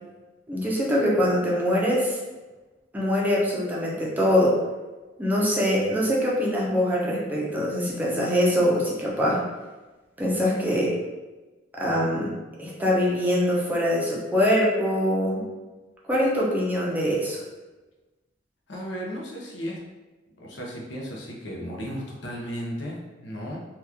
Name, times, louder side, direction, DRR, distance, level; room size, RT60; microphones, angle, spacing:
voice 1, 0.5-2.2 2.9-4.6 5.2-9.4 10.2-11.0 11.8-12.3 12.6-15.4 16.1-17.4, equal, 10° right, -5 dB, 0.6 m, -23 dB
voice 2, 18.7-19.8 20.4-23.6, equal, 65° left, -1 dB, 0.7 m, -35 dB
2.9 x 2.3 x 3.4 m, 1.2 s
head